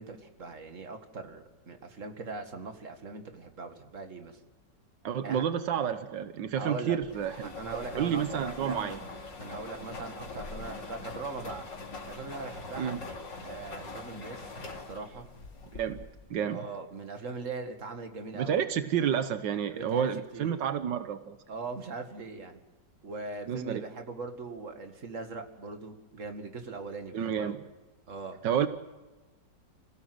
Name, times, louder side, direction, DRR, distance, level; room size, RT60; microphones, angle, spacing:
voice 1, 0.0-4.4 5.2-5.4 6.6-7.0 7.4-9.0 9.4-11.7 12.0-13.0 13.4-14.5 14.9-15.3 16.5-18.6 19.7-20.1 20.3-20.5 21.5-22.6 23.0-27.6 28.1-28.4, right 3 dB, 45° right, 6 dB, 2.4 m, -40 dB
voice 2, 5.0-7.5 7.9-9.0 12.8-13.0 15.7-16.0 16.3-16.6 18.3-21.4 23.5-23.8 27.1-27.6 28.4-28.7, right 8 dB, 90° right, 10 dB, 1.7 m, -30 dB
sound 1, 7.0-16.3, left 3 dB, 85° left, 3.4 m, -43 dB
28.0 x 16.5 x 7.9 m, 1.2 s
omnidirectional pair, 1.9 m